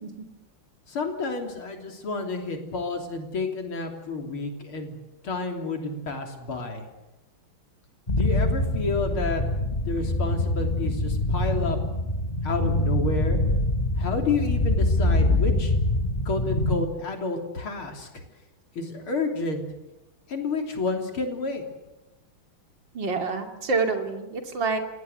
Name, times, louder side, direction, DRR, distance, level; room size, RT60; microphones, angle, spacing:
voice 1, 0.9-5.0 5.2-6.9 8.1-9.4 9.9-11.8 12.4-13.4 14.0-15.7 16.3-18.2 18.8-19.6 20.3-21.6, left 3 dB, 80° left, 4 dB, 4.2 m, -30 dB
sound 1, 8.1-16.8, left 1 dB, 20° left, 1.7 m, -24 dB
voice 2, 22.9-24.8, right 4 dB, 60° right, 5 dB, 3.2 m, -27 dB
28.0 x 18.5 x 8.1 m, 1.0 s
omnidirectional pair, 2.3 m